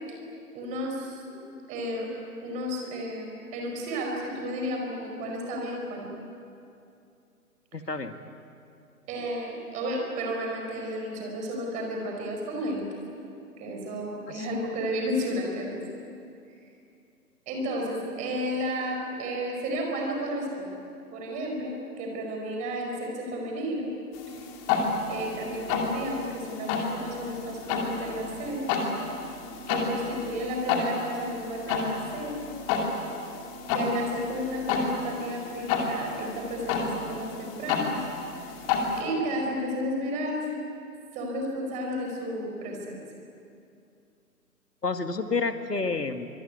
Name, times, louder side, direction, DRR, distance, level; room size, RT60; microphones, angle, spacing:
voice 1, 0.5-1.4 1.7-2.1 2.4-6.1 9.1-12.9 13.6-15.8 16.5-16.6 17.5-20.7 21.1-23.9 24.3-24.4 25.1-28.7 29.7-32.4 33.7-38.0 38.6-38.7 39.0-40.5 41.1-43.0, equal, 15° right, 1 dB, 4.8 m, -32 dB
voice 2, 7.7-8.2 14.3-14.5 44.8-46.3, left 4 dB, 80° left, 7 dB, 2.2 m, -29 dB
sound 1, 24.1-39.0, left 4 dB, 15° left, 2.5 m, -31 dB
25.0 x 23.0 x 9.4 m, 2.6 s
figure-of-eight pair, 140°, 47 cm